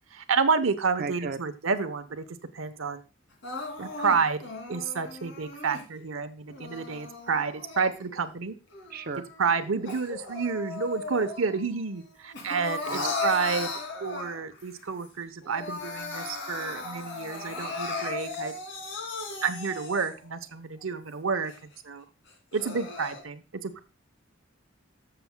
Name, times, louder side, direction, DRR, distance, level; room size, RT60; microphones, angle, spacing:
voice 1, 0.1-3.0 3.8-8.5 9.4-13.7 14.0-18.6 19.4-21.5 21.8-22.0 22.5-23.8, right 5 dB, 90° right, 10 dB, 0.9 m, -29 dB
voice 2, 1.0-1.4 8.9-9.2 12.9-13.1, right 4 dB, 50° right, 10 dB, 0.6 m, -34 dB
Crying sobbing, 3.4-5.9 6.5-8.3 8.7-11.6 12.0-14.6 15.0-15.1 15.4-20.3 20.8-20.9 21.5-21.6 22.3-23.2, left 3 dB, 65° left, 2.6 m, -37 dB
13.0 x 6.8 x 2.2 m, 0.32 s
head